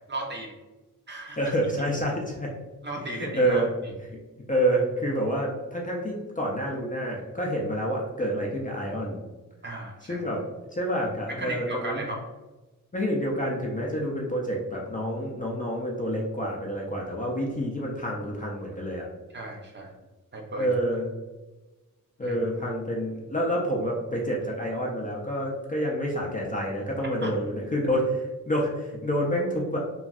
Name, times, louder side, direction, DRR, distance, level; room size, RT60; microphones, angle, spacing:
voice 1, 0.1-0.6 1.1-1.5 2.8-3.6 9.6-10.2 11.3-12.2 19.3-20.0 20.3-20.7 22.2-22.4 27.2-27.3, right 1 dB, 35° right, -1 dB, 0.5 m, -35 dB
voice 2, 1.4-2.5 3.1-3.7 4.1-4.2 4.5-9.2 10.1-10.4 10.7-12.0 12.9-19.1 20.6-21.0 22.2-29.8, equal, 25° left, -2 dB, 0.4 m, -28 dB
3.0 x 2.6 x 2.3 m, 1.1 s
wide cardioid pair, 160°, 33 cm